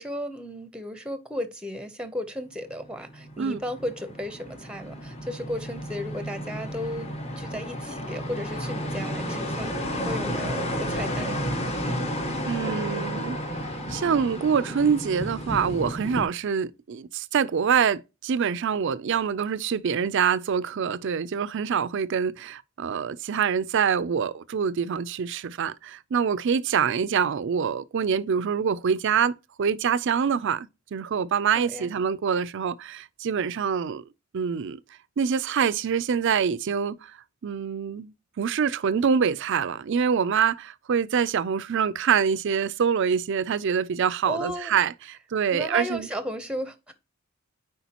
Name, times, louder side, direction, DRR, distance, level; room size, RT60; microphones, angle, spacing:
voice 1, 0.0-7.1 7.4-11.5 31.6-31.9 44.3-44.8 45.5-46.9, equal, 5° right, 0.7 m, -34 dB
sound 1, 2.8-16.2, equal, 30° left, 1.1 m, -32 dB
voice 2, 12.4-13.4 13.9-29.3 29.6-34.0 34.3-34.8 35.2-37.2 37.4-46.1, right 7 dB, 60° right, 0.4 m, -25 dB
8.0 x 5.0 x 2.9 m
head